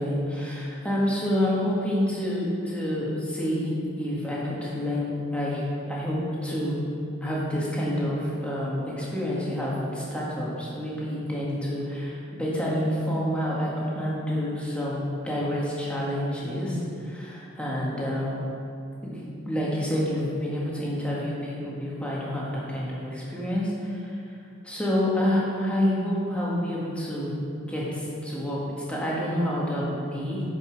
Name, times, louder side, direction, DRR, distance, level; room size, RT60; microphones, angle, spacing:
voice 1, 0.0-6.8 7.2-18.4 19.0-24.1 24.6-28.6 28.9-30.4, equal, 5° left, -6 dB, 1.6 m, -28 dB
9.0 x 5.4 x 5.9 m, 2.6 s
head